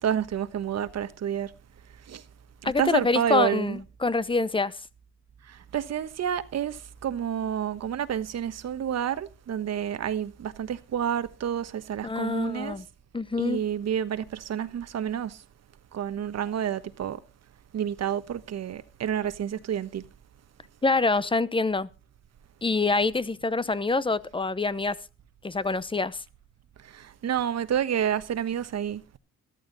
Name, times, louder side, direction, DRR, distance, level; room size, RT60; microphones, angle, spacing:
voice 1, 0.0-1.5 2.1-2.2 2.6-3.8 5.5-12.8 13.4-15.4 15.9-17.2 17.7-20.0 26.8-29.0, right 9 dB, 60° right, 1.3 m, -29 dB
voice 2, 2.6-4.7 12.0-12.8 13.1-13.6 20.8-21.9 22.6-24.9 25.4-26.2, left 3 dB, 15° left, 0.9 m, -25 dB
14.0 x 13.5 x 4.1 m
cardioid pair, 90°, 30 cm